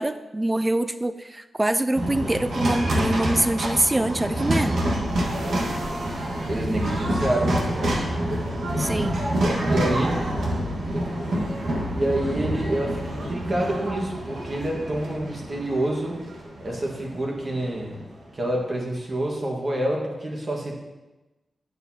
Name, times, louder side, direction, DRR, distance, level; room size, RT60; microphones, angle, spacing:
voice 1, 0.0-4.9 8.8-9.2, right 1 dB, 15° right, 11 dB, 0.4 m, -24 dB
sound 1, 1.9-18.2, right 1 dB, 75° right, 1.5 m, -27 dB
voice 2, 6.5-8.0 9.7-10.1 11.9-16.2 16.6-18.0 18.3-20.7, right 1 dB, 40° right, -1 dB, 1.6 m, -27 dB
9.2 x 6.9 x 2.8 m, 1.1 s
wide cardioid pair, 100°, 0 cm